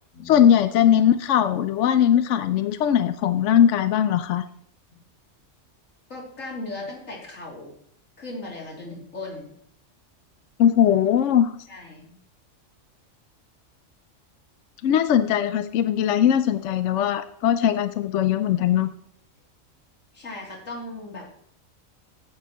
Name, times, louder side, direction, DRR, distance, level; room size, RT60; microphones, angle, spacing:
voice 1, 0.2-4.4 10.6-11.5 14.8-18.9, left 9 dB, 70° left, 10 dB, 0.9 m, -20 dB
voice 2, 6.1-7.7 8.2-9.5 11.7-12.2 20.1-21.3, left 2 dB, 90° left, -2 dB, 3.3 m, -37 dB
15.5 x 9.6 x 3.0 m, 0.65 s
omnidirectional pair, 1.3 m